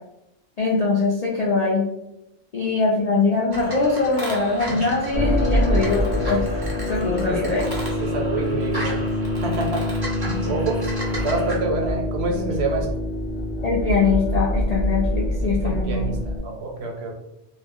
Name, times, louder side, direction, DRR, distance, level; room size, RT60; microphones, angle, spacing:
voice 1, 0.6-1.9 2.5-6.4 6.9-7.6 13.6-16.1, left 4 dB, 60° left, -4 dB, 0.4 m, -22 dB
sound 1, 3.5-11.6, right 1 dB, 30° right, 0.4 m, -34 dB
sound 2, 5.1-16.4, left 1 dB, 40° left, 0.8 m, -25 dB
voice 2, 8.0-9.1 9.4-9.9 10.5-10.8 11.2-12.9 15.4-17.1, right 3 dB, 65° right, 1 dB, 0.8 m, -27 dB
2.5 x 2.0 x 3.4 m, 0.87 s
omnidirectional pair, 1.2 m